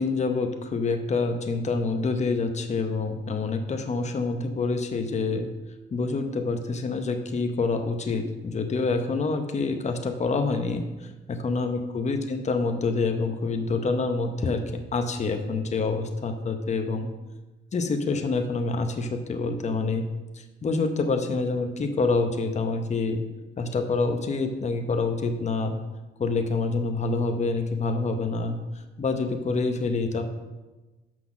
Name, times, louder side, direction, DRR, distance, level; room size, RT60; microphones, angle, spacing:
voice 1, 0.0-5.5 5.9-10.8 11.3-14.6 14.9-17.1 17.7-20.1 20.6-23.2 23.6-25.8 26.2-28.6 29.0-30.2, left 3 dB, 35° left, 6 dB, 0.9 m, -26 dB
6.2 x 5.7 x 6.0 m, 1.2 s
cardioid pair, 90°, 20 cm